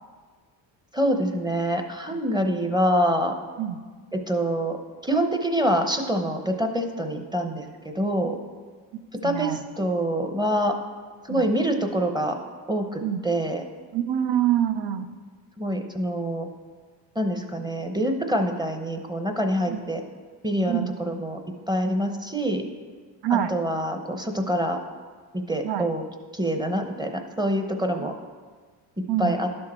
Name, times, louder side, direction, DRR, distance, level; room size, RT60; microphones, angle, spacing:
voice 1, 0.9-3.3 4.1-4.8 5.0-8.4 9.2-10.7 11.3-12.4 12.7-13.6 15.6-16.5 17.2-20.0 20.4-21.4 21.7-22.7 23.3-24.8 25.3-26.1 26.3-28.1 29.2-29.5, equal, 10° right, 5 dB, 0.8 m, -25 dB
voice 2, 9.2-9.6 11.3-11.5 13.0-13.2 13.9-15.1 19.7-19.8 20.7-21.0 23.2-23.5 25.6-25.9 28.0-28.1 29.1-29.4, right 10 dB, 65° right, 10 dB, 0.7 m, -25 dB
11.0 x 6.6 x 4.3 m, 1.5 s
cardioid pair, 105°, 45 cm